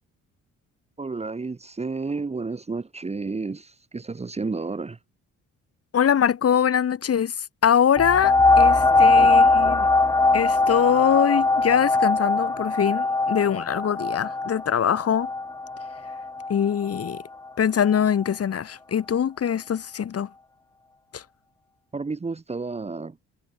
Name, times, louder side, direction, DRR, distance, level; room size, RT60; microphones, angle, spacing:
voice 1, 1.0-5.0 9.1-9.8 21.9-23.2, right 4 dB, 20° right, 1.2 m, -31 dB
voice 2, 5.9-9.9 10.3-15.3 16.5-17.2 17.6-20.3 21.1-21.2, left 8 dB, 50° left, 2.4 m, -23 dB
sound 1, 8.0-17.2 17.9-18.0, left 3 dB, 10° left, 0.5 m, -21 dB
cardioid pair, 90°, 30 cm